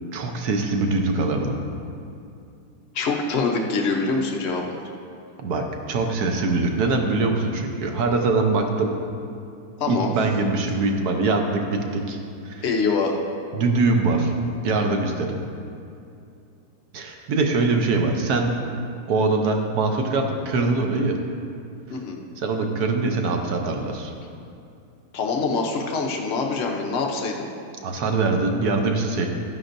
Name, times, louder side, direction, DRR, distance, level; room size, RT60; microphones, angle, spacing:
voice 1, 0.1-1.6 5.4-9.0 9.9-12.6 13.5-14.3 14.6-15.4 16.9-18.5 19.1-21.2 22.4-24.1 27.8-29.3, right 3 dB, 60° right, 3 dB, 1.1 m, -23 dB
voice 2, 2.9-4.8 9.8-10.1 12.6-13.2 21.9-22.2 25.1-27.5, left 4 dB, 75° left, 1 dB, 0.6 m, -24 dB
12.5 x 9.7 x 2.6 m, 2.6 s
omnidirectional pair, 2.2 m